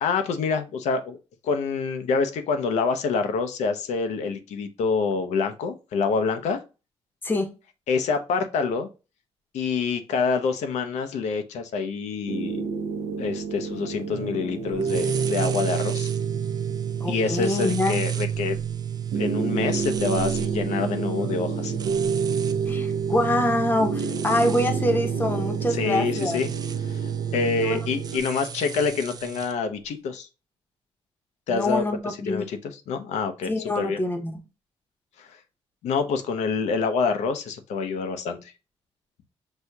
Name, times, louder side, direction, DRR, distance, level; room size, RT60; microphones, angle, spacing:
voice 1, 0.0-1.2 1.4-6.6 7.9-8.9 9.5-12.7 13.2-16.1 17.1-18.6 19.2-21.7 25.7-26.5 26.9-30.3 31.5-34.0 35.2-35.4 35.8-38.5, left 5 dB, 90° left, 7 dB, 0.6 m, -26 dB
sound 1, 12.3-28.2, right 5 dB, 80° right, 0.6 m, -30 dB
sound 2, 14.8-29.5, right 9 dB, 35° right, 0.4 m, -31 dB
voice 2, 17.0-18.0 22.7-26.4 27.6-27.8 31.5-32.5 33.5-34.4, left 1 dB, 20° left, 5 dB, 0.7 m, -25 dB
6.1 x 2.7 x 2.2 m, 0.30 s
cardioid pair, 140°, 11 cm